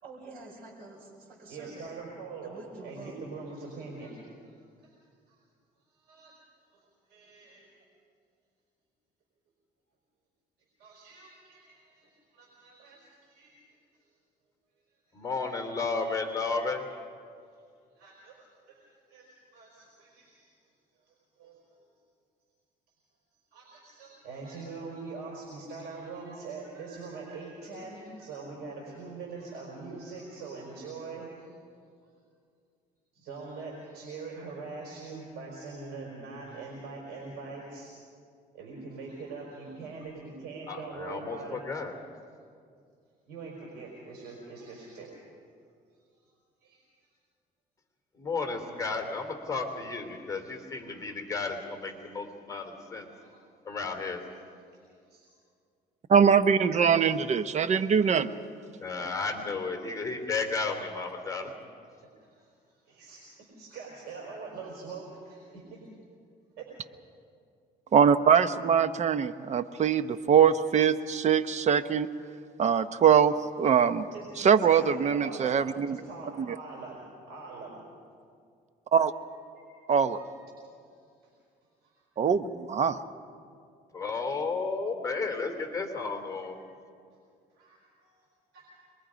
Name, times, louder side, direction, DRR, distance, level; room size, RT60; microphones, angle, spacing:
voice 1, 0.0-1.9 2.4-3.2, right 3 dB, 65° right, -2 dB, 4.5 m, -47 dB
voice 2, 1.5-2.6 2.8-4.5 4.8-5.0 5.3-5.4 5.9-6.3 7.1-7.7 10.8-13.7 15.1-15.3 17.9-20.5 21.0-21.6 23.5-31.5 33.1-37.9 38.5-41.7 43.3-45.3 46.6-46.8 53.1-53.4 55.1-55.2 57.8-58.0 62.2-65.8 66.6-66.7 74.1-77.8 79.0-79.2 79.6-79.7 80.0-80.3 81.8-81.9 87.5-88.2 88.5-88.8, right 4 dB, 80° right, -2 dB, 4.7 m, -43 dB
voice 3, 15.1-16.8 40.7-41.9 48.2-53.1 53.7-54.2 58.8-61.5 83.9-86.6, left 4 dB, 20° left, 3 dB, 3.1 m, -33 dB
voice 4, 56.1-58.3 67.9-72.1 72.6-74.1 74.4-76.0 76.4-76.5 78.9-79.1 79.9-80.2 82.2-83.0, right 7 dB, 45° right, 13 dB, 0.8 m, -23 dB
25.5 x 22.0 x 5.2 m, 2.3 s
cardioid pair, 110°, 17 cm